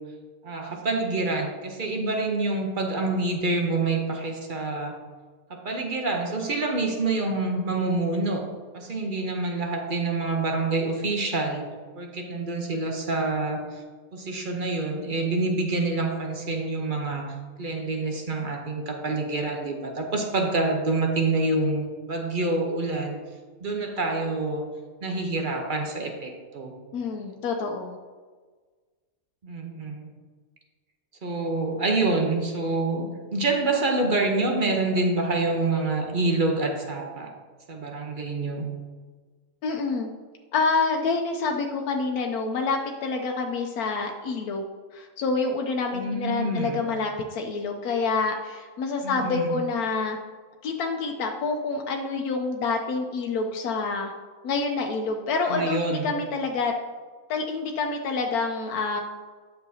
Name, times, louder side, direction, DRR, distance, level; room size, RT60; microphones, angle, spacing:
voice 1, 0.4-5.0 5.5-8.5 8.7-13.6 14.1-23.2 23.6-24.7 25.0-26.8 29.4-30.1 31.2-37.3 37.7-38.7 45.9-46.8 49.0-49.6 55.5-56.1, right 2 dB, 45° right, 3 dB, 0.8 m, -27 dB
voice 2, 26.9-28.0 39.6-40.1 40.5-44.6 44.9-50.2 50.6-54.1 54.4-56.7 57.3-59.0, left 4 dB, 90° left, 2 dB, 1.1 m, -27 dB
9.7 x 6.6 x 2.7 m, 1.4 s
omnidirectional pair, 1.5 m